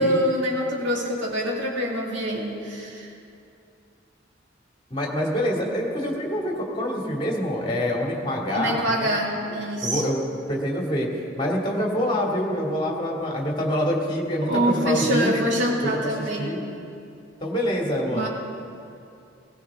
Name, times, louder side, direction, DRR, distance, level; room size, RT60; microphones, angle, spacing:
voice 1, 0.0-3.1 8.5-10.0 14.4-16.5 18.1-18.3, equal, 65° right, -2 dB, 2.6 m, -25 dB
voice 2, 4.9-9.1 9.8-10.2 10.5-11.1 11.3-15.5 15.8-16.0 16.4-16.6 17.4-18.3, equal, 25° left, -2 dB, 2.6 m, -26 dB
19.5 x 17.0 x 3.7 m, 2.6 s
head